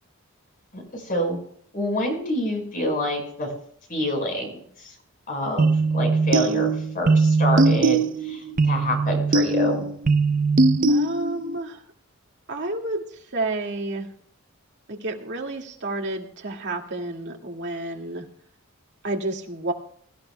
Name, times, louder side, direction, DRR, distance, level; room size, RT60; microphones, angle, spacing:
voice 1, 0.7-1.4 1.7-3.5 3.9-4.9 5.3-9.8, left 1 dB, 40° left, 2 dB, 4.9 m, -27 dB
sound 1, 5.6-11.6, right 3 dB, 40° right, 0.6 m, -21 dB
voice 2, 10.9-11.8 12.5-14.1 14.9-18.3 19.0-19.7, right 2 dB, 55° right, 1 dB, 2.1 m, -30 dB
23.0 x 14.0 x 2.2 m, 0.62 s
head